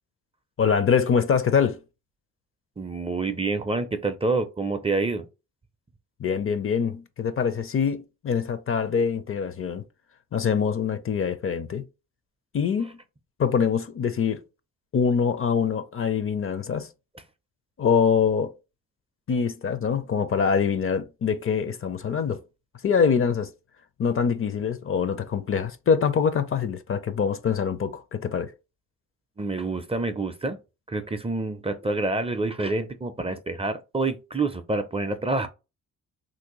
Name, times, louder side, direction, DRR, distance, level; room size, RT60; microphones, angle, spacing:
voice 1, 0.6-1.8 6.2-9.8 10.3-11.8 12.5-13.0 13.4-14.4 14.9-16.9 17.8-18.5 19.3-22.4 22.8-23.5 24.0-28.5, left 6 dB, 40° left, 0.5 m, -24 dB
voice 2, 2.8-5.3 29.4-30.6 30.9-35.5, right 3 dB, 20° right, 0.4 m, -27 dB
3.2 x 2.6 x 3.0 m
cardioid pair, 75°, 34 cm